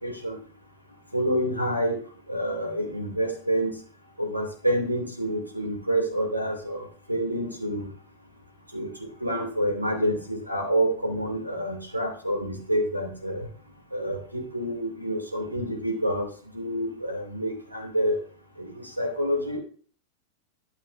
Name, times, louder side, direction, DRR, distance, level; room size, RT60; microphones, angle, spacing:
voice 1, 0.0-0.4 1.1-2.0 2.3-3.7 4.2-7.9 8.7-8.9 9.2-13.5 13.9-16.3 16.5-18.2 18.6-19.6, equal, 85° right, 2 dB, 2.3 m, -28 dB
12.5 x 7.4 x 2.5 m, 0.43 s
figure-of-eight pair, 90°, 0 cm